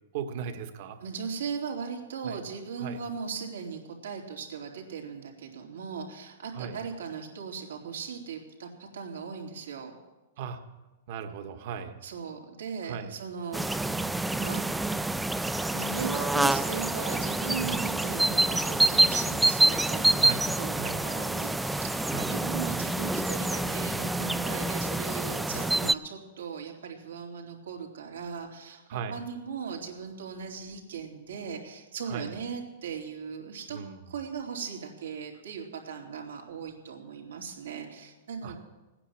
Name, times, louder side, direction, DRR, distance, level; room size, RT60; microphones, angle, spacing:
voice 1, 0.1-1.0 2.2-2.4 2.8-3.0 6.5-6.8 10.4-10.6 11.1-12.0 12.9-13.1 17.6-17.8 20.2-20.4 20.8-21.0 22.1-22.3 25.4-25.6 28.9-29.1 32.1-32.3 33.7-34.0 38.4-38.6, right 7 dB, 55° right, 7 dB, 1.7 m, -37 dB
voice 2, 1.0-9.9 12.0-13.9 14.4-14.6 15.5-20.3 20.6-33.8 34.1-38.6, right 6 dB, 85° right, 0 dB, 3.7 m, -38 dB
sound 1, 13.5-25.9, right 2 dB, 5° right, 0.4 m, -27 dB
16.0 x 9.8 x 7.4 m, 1.1 s
hypercardioid pair, 135°, 0 cm